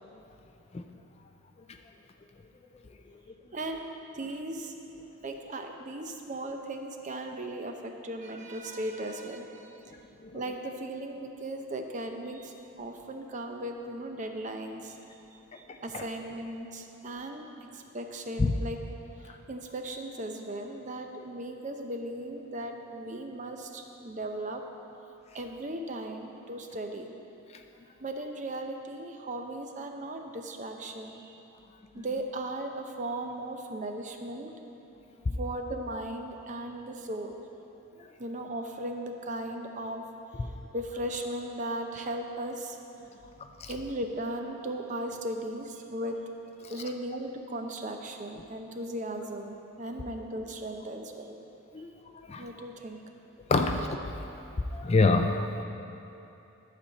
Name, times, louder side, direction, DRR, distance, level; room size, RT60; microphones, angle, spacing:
voice 1, 3.5-3.8 4.1-4.7 5.2-9.9 10.3-15.0 15.6-17.5 17.7-18.8 19.3-24.6 25.3-27.2 28.0-31.4 31.9-34.5 35.4-37.4 38.2-40.0 40.7-42.8 43.7-46.2 46.7-51.4 52.4-53.0, right 1 dB, 35° right, 4 dB, 0.6 m, -37 dB
voice 2, 15.7-16.0 18.4-18.5 32.0-32.1 35.3-35.4 43.6-43.7 51.7-51.9 52.1-52.5 53.5-54.0 54.7-55.6, left 3 dB, 30° left, 6 dB, 0.3 m, -26 dB
12.0 x 4.3 x 7.2 m, 2.9 s
head